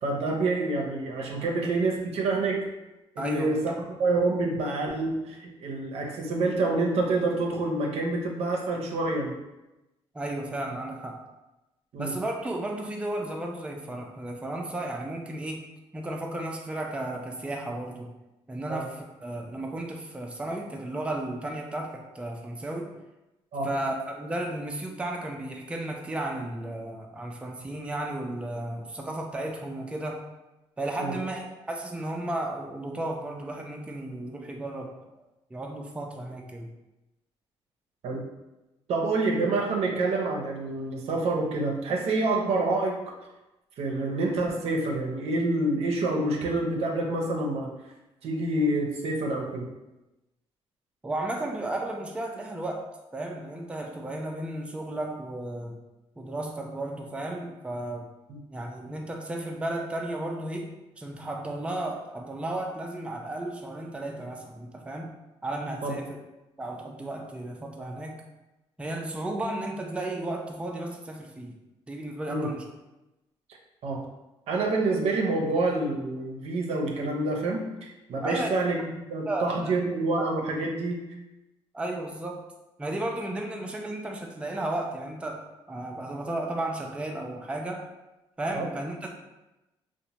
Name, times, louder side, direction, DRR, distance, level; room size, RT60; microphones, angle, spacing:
voice 1, 0.0-2.6 3.2-3.7 4.0-9.4 11.9-12.2 18.7-18.9 23.5-23.7 31.0-31.1 38.0-38.2 38.9-43.1 43.8-47.7 48.2-49.7 58.3-58.4 65.8-66.0 72.3-72.5 73.8-74.0 74.5-81.0 88.5-88.7, right 2 dB, 70° right, 0 dB, 0.6 m, -27 dB
voice 2, 3.2-3.8 10.1-11.2 12.0-15.6 15.9-18.1 18.5-22.9 23.6-30.2 30.8-34.9 35.5-36.7 51.0-52.9 53.1-55.8 56.2-58.1 58.5-65.1 65.4-66.2 66.6-68.2 68.8-71.5 71.9-72.6 78.2-78.5 79.3-79.7 80.2-80.3 81.7-82.4 82.8-85.4 85.7-87.9 88.4-89.1, right 1 dB, 10° right, 1 dB, 0.4 m, -34 dB
2.9 x 2.1 x 2.8 m, 0.99 s
cardioid pair, 75°, 11 cm